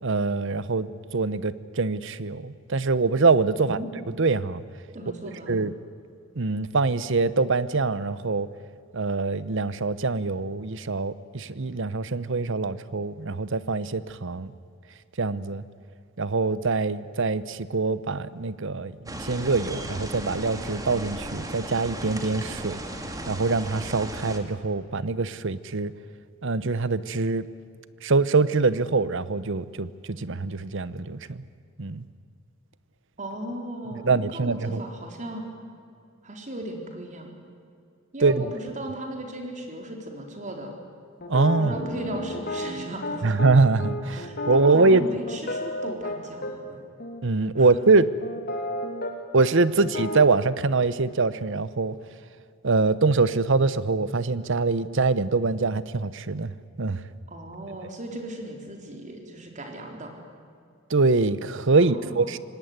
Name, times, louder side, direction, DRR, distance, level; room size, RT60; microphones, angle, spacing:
voice 1, 0.0-3.8 4.2-4.6 5.5-5.7 6.4-8.5 8.9-14.5 15.2-15.6 16.2-22.8 23.3-25.9 26.4-27.5 28.0-31.4 31.8-32.0 34.0-34.8 38.2-38.4 41.3-41.7 43.2-45.0 47.2-48.1 49.3-51.9 52.6-56.5 56.8-57.0 60.9-62.4, right 3 dB, 65° right, 16 dB, 0.9 m, -24 dB
voice 2, 3.5-3.9 4.9-5.6 33.2-35.5 36.2-37.3 38.1-40.8 41.6-43.4 44.1-46.8 47.6-47.7 57.3-60.1 61.8-62.3, right 1 dB, 35° right, 3 dB, 4.2 m, -37 dB
sound 1, 19.1-24.4, right 1 dB, 20° right, 2.3 m, -36 dB
sound 2, 41.2-46.5 47.0-47.2 47.7-49.1 49.4-49.5 49.8-50.4, left 1 dB, 50° left, 3.0 m, -32 dB
25.5 x 19.0 x 9.5 m, 2.4 s
head